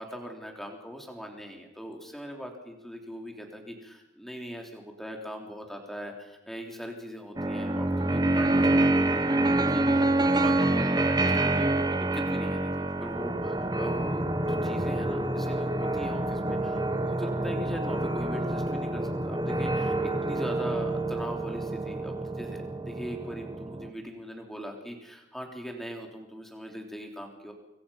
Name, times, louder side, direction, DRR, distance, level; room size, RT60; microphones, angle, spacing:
voice 1, 0.0-27.5, equal, ahead, 2 dB, 3.4 m, -41 dB
sound 1, 7.4-23.9, right 2 dB, 20° right, 1.1 m, -27 dB
26.0 x 22.0 x 5.8 m, 0.99 s
head